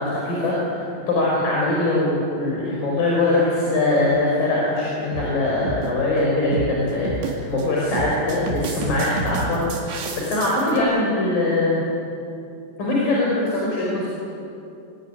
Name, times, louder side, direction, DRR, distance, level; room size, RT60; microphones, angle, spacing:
voice 1, 0.0-11.8 12.8-14.1, left 2 dB, 55° left, -4 dB, 6.4 m, -22 dB
sound 1, 4.4-4.5 5.1-5.3 5.6-5.9 6.5-6.8 7.1-7.6 7.9-10.8, right 3 dB, 85° right, 4.7 m, -29 dB
26.0 x 21.0 x 9.9 m, 2.7 s
omnidirectional pair, 4.8 m